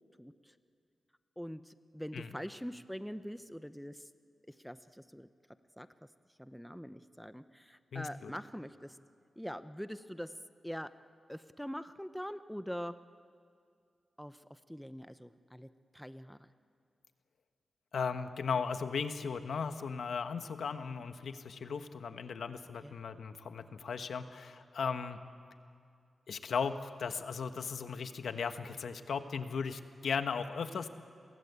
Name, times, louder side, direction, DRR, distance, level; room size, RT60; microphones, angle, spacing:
voice 1, 0.2-0.5 1.4-4.1 4.6-5.3 5.8-5.9 6.4-9.0 9.4-10.3 10.6-10.9 11.3-13.0 14.2-16.5 22.8-22.9, equal, ahead, 11 dB, 0.8 m, -44 dB
voice 2, 7.9-8.3 17.9-25.2 26.3-30.9, left 5 dB, 80° left, 9 dB, 1.3 m, -37 dB
29.5 x 23.0 x 8.3 m, 2.3 s
wide cardioid pair, 100°, 0 cm